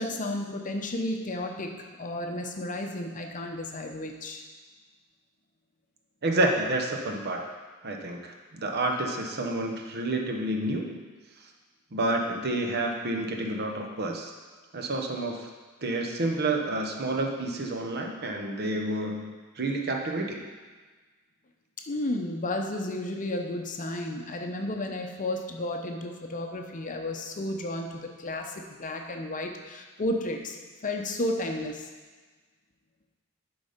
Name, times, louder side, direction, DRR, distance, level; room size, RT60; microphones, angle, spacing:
voice 1, 0.0-4.4 21.9-30.6 30.8-31.8, left 1 dB, 35° left, 3 dB, 0.7 m, -32 dB
voice 2, 6.2-7.5 7.8-11.0 11.9-14.3 14.7-15.5 15.8-19.3 19.6-20.4, right 2 dB, 50° right, 2 dB, 0.9 m, -29 dB
10.5 x 4.1 x 5.1 m, 1.4 s
head